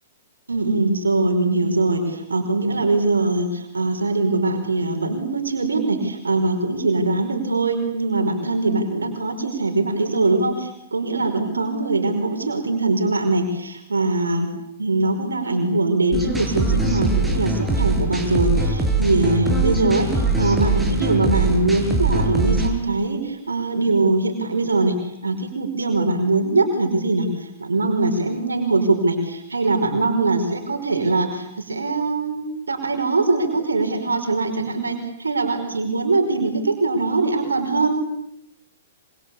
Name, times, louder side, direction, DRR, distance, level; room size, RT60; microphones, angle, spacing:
voice 1, 0.5-14.5 14.8-37.9, right 3 dB, 85° right, 4 dB, 5.1 m, -22 dB
sound 1, 16.1-22.7, right 2 dB, 5° right, 6.2 m, -22 dB
26.0 x 25.5 x 8.6 m, 0.79 s
hypercardioid pair, 115°, 0 cm